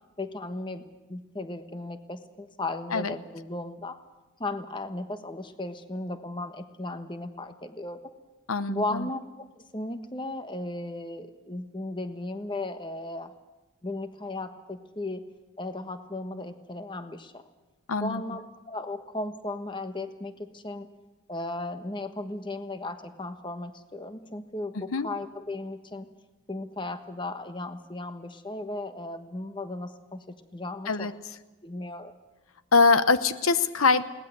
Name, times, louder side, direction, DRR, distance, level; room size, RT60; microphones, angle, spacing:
voice 1, 0.2-4.0 4.4-8.1 8.7-9.5 9.7-13.3 13.8-15.2 15.6-17.5 18.0-20.9 21.3-26.1 26.5-31.1 31.6-32.1, left 2 dB, 20° left, 9 dB, 1.2 m, -36 dB
voice 2, 8.5-9.1 17.9-18.2 24.9-25.1 30.9-31.1 32.7-34.0, left 4 dB, 80° left, 13 dB, 0.9 m, -23 dB
21.5 x 18.5 x 8.1 m, 1.1 s
head